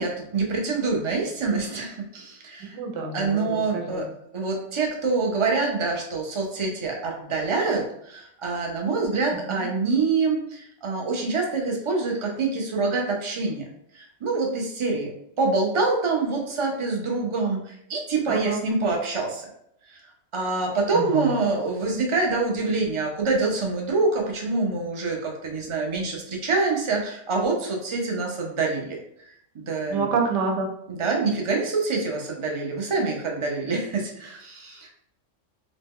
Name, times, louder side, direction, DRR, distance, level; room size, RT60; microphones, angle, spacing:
voice 1, 0.0-2.8 3.1-4.1 4.3-13.6 13.9-15.1 15.4-19.5 20.3-29.0 29.5-30.1 30.9-34.9, right 3 dB, 55° right, 0 dB, 0.3 m, -26 dB
voice 2, 2.7-4.1 9.5-9.6 18.3-18.6 20.9-21.3 29.9-30.7, right 4 dB, 70° right, 2 dB, 0.9 m, -28 dB
2.9 x 2.0 x 3.5 m, 0.71 s
omnidirectional pair, 1.3 m